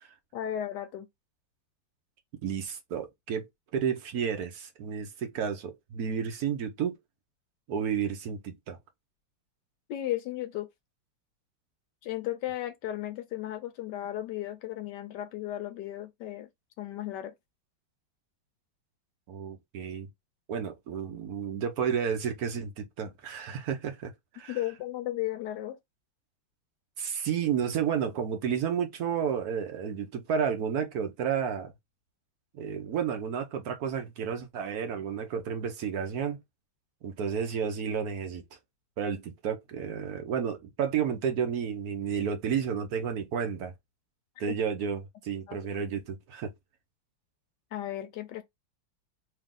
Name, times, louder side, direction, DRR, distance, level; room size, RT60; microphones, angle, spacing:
voice 1, 0.3-1.1 9.9-10.7 12.0-16.5 16.8-17.3 24.5-25.8 44.4-44.6 45.5-45.6 47.7-48.4, left 13 dB, 75° left, 1.0 m, -35 dB
voice 2, 2.4-3.4 3.7-7.0 7.7-8.8 19.3-20.1 20.5-24.6 27.0-31.7 32.5-36.4 37.0-38.4 39.0-43.7 44.4-46.5, right 7 dB, 60° right, 1.1 m, -31 dB
3.3 x 3.0 x 3.6 m
omnidirectional pair, 2.2 m